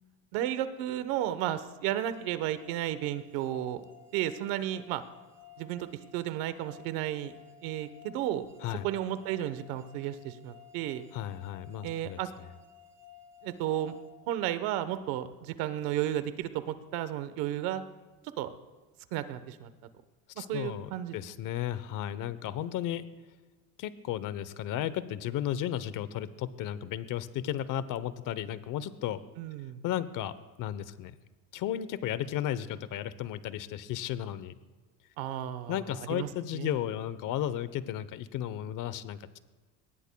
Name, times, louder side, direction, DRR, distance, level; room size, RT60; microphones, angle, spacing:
voice 1, 0.3-3.8 4.1-5.0 5.6-5.9 6.1-7.3 7.6-8.4 8.8-11.0 11.8-12.3 13.4-13.9 14.3-17.8 18.4-18.5 19.1-19.7 20.4-21.1 29.4-29.8 35.2-36.3 36.5-36.8, right 12 dB, 85° right, 12 dB, 1.1 m, -33 dB
sound 1, 1.9-14.9, left 8 dB, 30° right, 1.5 m, -56 dB
voice 2, 11.1-12.2 20.4-23.0 23.8-29.2 29.8-31.1 31.5-34.5 35.7-39.4, left 11 dB, 60° left, 14 dB, 0.9 m, -34 dB
22.0 x 19.0 x 2.3 m, 1.3 s
cardioid pair, 115°, 36 cm